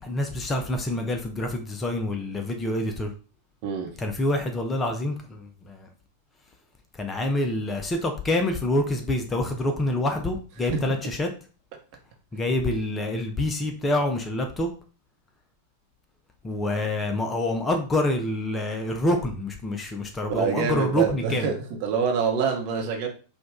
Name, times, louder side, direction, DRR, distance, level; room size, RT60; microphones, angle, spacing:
voice 1, 0.0-3.1 4.0-5.9 6.9-11.3 12.3-14.7 16.4-21.5, left 1 dB, 15° left, 4 dB, 0.8 m, -27 dB
voice 2, 20.2-23.1, right 6 dB, 45° right, 2 dB, 1.0 m, -26 dB
4.9 x 2.5 x 3.6 m, 0.37 s
figure-of-eight pair, 90°, 0 cm